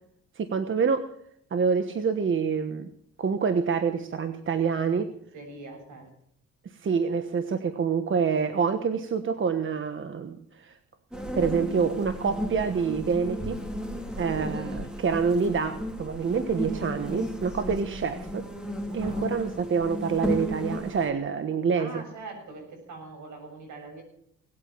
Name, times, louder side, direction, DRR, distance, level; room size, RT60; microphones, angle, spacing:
voice 1, 0.4-1.1 1.5-2.9 3.2-5.1 6.8-10.8 11.3-13.6 14.2-18.5 18.9-22.0, right 6 dB, 40° right, 9 dB, 1.2 m, -27 dB
voice 2, 5.3-6.1 14.2-14.4 18.9-19.2 21.7-24.0, right 3 dB, 75° right, 3 dB, 7.3 m, -43 dB
sound 1, 11.1-21.1, equal, 5° right, 2.4 m, -34 dB
18.5 x 8.7 x 7.4 m, 0.67 s
cardioid pair, 90°, 30 cm